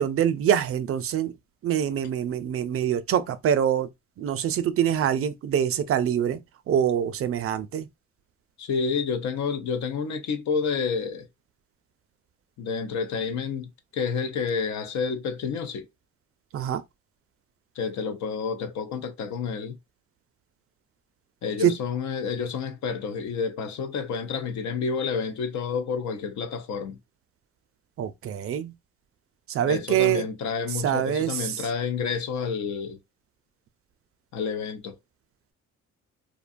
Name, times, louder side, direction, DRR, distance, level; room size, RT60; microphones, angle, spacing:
voice 1, 0.0-1.3 1.6-3.9 4.2-6.4 6.7-7.9 16.5-16.8 21.6-21.7 28.0-28.7 29.5-30.2 30.8-31.7, right 9 dB, 50° right, 0.4 m, -25 dB
voice 2, 8.6-11.3 12.6-15.9 17.8-19.8 21.4-27.0 29.6-33.0 34.3-35.0, left 5 dB, 70° left, 0.6 m, -29 dB
2.6 x 2.2 x 2.5 m
cardioid pair, 90°, 30 cm